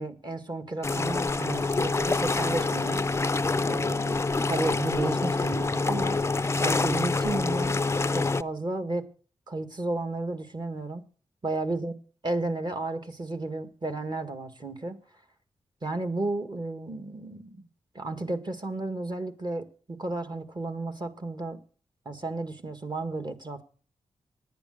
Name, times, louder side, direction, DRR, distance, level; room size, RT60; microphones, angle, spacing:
voice 1, 0.0-3.1 3.6-6.2 6.6-7.8 8.1-9.1 9.5-11.1 11.4-11.9 12.2-15.0 15.8-17.7 17.9-21.6 22.1-23.6, right 2 dB, 40° right, 1.9 m, -33 dB
sound 1, 0.8-8.4, left 3 dB, 25° left, 0.5 m, -26 dB
10.5 x 9.7 x 6.5 m
cardioid pair, 60°, 11 cm